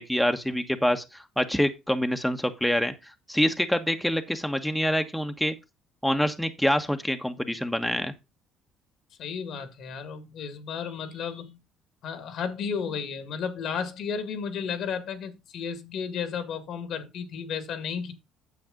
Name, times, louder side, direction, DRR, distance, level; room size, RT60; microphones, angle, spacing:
voice 1, 0.0-2.9 3.3-5.5 6.0-8.1, equal, 5° left, 1.3 m, -26 dB
voice 2, 9.2-11.6 12.0-18.1, left 6 dB, 65° left, 2.0 m, -33 dB
9.3 x 7.1 x 3.9 m
supercardioid pair, 70°, 0 cm